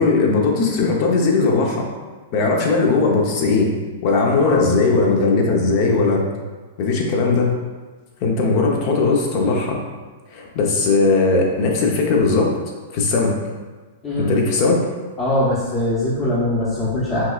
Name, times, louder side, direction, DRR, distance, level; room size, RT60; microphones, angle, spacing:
voice 1, 0.0-1.9 2.3-3.7 4.0-6.2 6.8-7.5 8.2-9.8 10.3-12.5 12.9-13.3 14.2-14.8, left 3 dB, 50° left, 0 dB, 0.8 m, -18 dB
voice 2, 4.3-4.7 14.0-14.3 15.2-17.3, left 1 dB, 20° left, -9 dB, 0.9 m, -22 dB
5.7 x 2.4 x 2.4 m, 1.4 s
hypercardioid pair, 115°, 0 cm